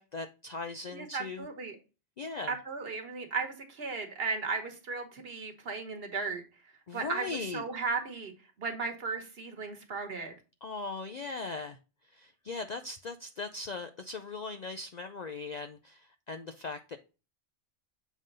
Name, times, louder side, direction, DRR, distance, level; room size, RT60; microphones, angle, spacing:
voice 1, 0.0-1.5 2.2-2.6 6.9-7.6 10.6-11.8 12.1-17.0, left 3 dB, 55° left, 0.4 m, -39 dB
voice 2, 0.9-1.8 2.5-6.4 6.9-8.3 8.6-10.3, right 4 dB, 55° right, 1.4 m, -35 dB
7.2 x 3.8 x 3.9 m
omnidirectional pair, 1.2 m